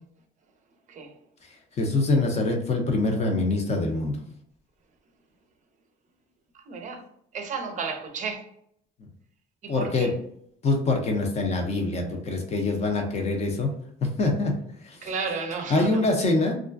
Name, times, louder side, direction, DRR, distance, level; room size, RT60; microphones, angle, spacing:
voice 1, 0.9-1.2 6.5-7.1 7.3-8.5 9.6-10.1 15.0-16.0, right 5 dB, 45° right, 0.5 m, -33 dB
voice 2, 1.8-4.2 9.0-9.1 9.7-10.1 10.6-13.7 14.0-14.5 14.8-15.1 15.7-16.6, left 2 dB, 40° left, 0.6 m, -24 dB
2.4 x 2.1 x 2.4 m
cardioid pair, 110°, 17 cm